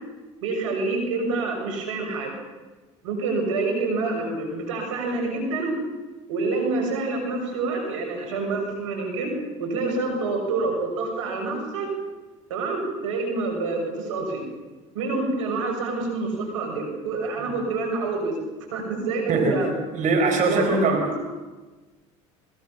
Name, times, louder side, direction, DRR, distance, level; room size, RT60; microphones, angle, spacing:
voice 1, 0.4-2.3 3.0-5.8 6.3-9.3 9.6-11.9 12.5-14.4 14.9-18.4 18.7-19.8 20.5-21.3, right 3 dB, 90° right, 2 dB, 6.9 m, -27 dB
voice 2, 19.9-21.3, right 3 dB, 50° right, 4 dB, 4.7 m, -22 dB
22.0 x 21.5 x 7.4 m, 1.2 s
hypercardioid pair, 75°, 16 cm